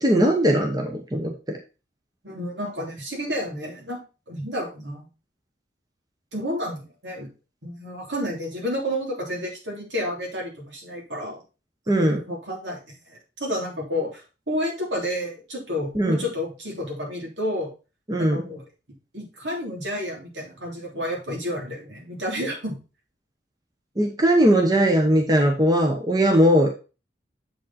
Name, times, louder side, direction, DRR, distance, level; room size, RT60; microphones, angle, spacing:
voice 1, 0.0-1.3 11.9-12.2 15.9-16.2 18.1-18.4 24.0-26.7, equal, 20° right, 2 dB, 1.0 m, -19 dB
voice 2, 2.2-4.0 4.3-5.1 6.3-7.3 7.6-11.4 12.0-12.8 13.1-17.7 18.2-18.6 19.1-22.8, equal, 80° right, -2 dB, 3.4 m, -30 dB
7.6 x 5.2 x 4.2 m, 0.31 s
head